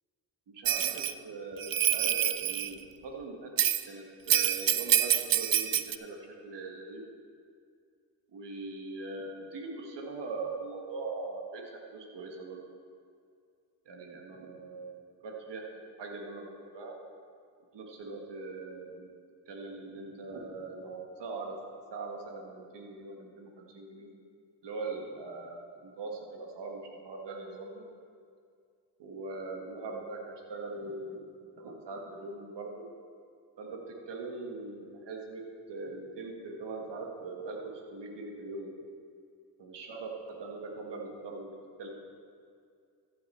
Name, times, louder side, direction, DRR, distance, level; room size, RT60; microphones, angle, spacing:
voice 1, 0.5-3.5 3.9-6.2 6.4-7.0 8.3-11.6 11.9-12.6 13.8-17.0 17.7-19.1 19.5-21.5 21.9-24.1 24.6-27.8 29.0-31.3 31.6-32.9 33.6-35.4 35.7-38.7 39.6-41.5 41.8-41.9, right 3 dB, 80° right, 1 dB, 1.7 m, -41 dB
Bell, 0.7-1.1 1.6-2.7 3.6-3.8 4.3-6.0, right 11 dB, 55° right, 0.5 m, -26 dB
14.0 x 6.7 x 4.3 m, 2.3 s
supercardioid pair, 45°, 42 cm